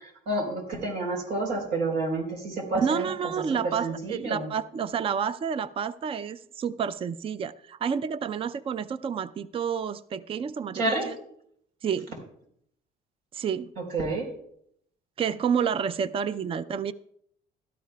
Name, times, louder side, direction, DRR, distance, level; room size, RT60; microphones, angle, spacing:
voice 1, 0.3-3.1 3.6-4.5 10.7-11.1 13.8-14.3, right 2 dB, 85° right, 1 dB, 4.1 m, -29 dB
voice 2, 2.8-11.2 11.8-12.1 13.3-13.7 15.2-16.9, right 7 dB, 35° right, 15 dB, 0.4 m, -29 dB
17.0 x 12.5 x 2.3 m, 0.69 s
cardioid pair, 110°, 17 cm